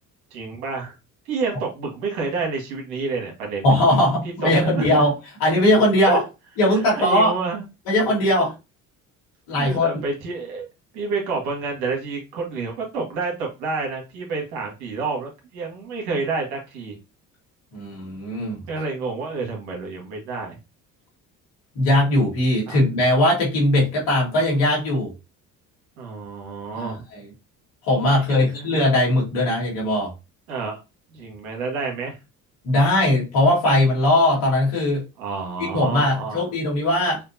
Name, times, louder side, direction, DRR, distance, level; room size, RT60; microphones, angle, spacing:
voice 1, 0.3-0.9 1.2-3.7 4.4-5.0 6.0-6.2 7.0-7.6 9.5-10.7 10.9-17.0 18.7-20.6 22.7-22.8 26.0-27.0 28.1-28.7 30.5-30.8 31.1-32.2 35.2-36.4, right 4 dB, 85° right, 0 dB, 1.6 m, -29 dB
voice 2, 3.6-5.1 5.4-6.2 6.6-7.3 7.9-8.5 9.5-9.9 17.7-18.6 21.8-25.1 26.8-27.3 27.8-30.1 32.6-35.0 35.6-37.2, left 1 dB, 80° left, -4 dB, 2.1 m, -19 dB
5.1 x 2.5 x 2.7 m, 0.26 s
hypercardioid pair, 60°, 41 cm